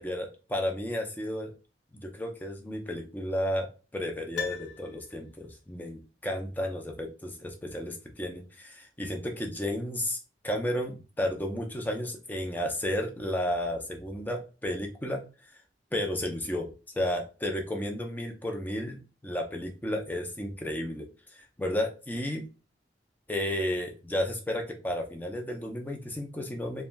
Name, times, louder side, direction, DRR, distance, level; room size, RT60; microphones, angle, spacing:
voice 1, 0.0-1.5 1.9-10.2 10.4-15.2 15.9-16.7 16.9-21.1 21.6-22.4 23.3-26.8, left 1 dB, 10° left, 2 dB, 0.5 m, -32 dB
Piano, 4.3-5.6 5.9-6.0, left 6 dB, 85° left, 0.5 m, -39 dB
3.2 x 2.5 x 2.2 m, 0.34 s
head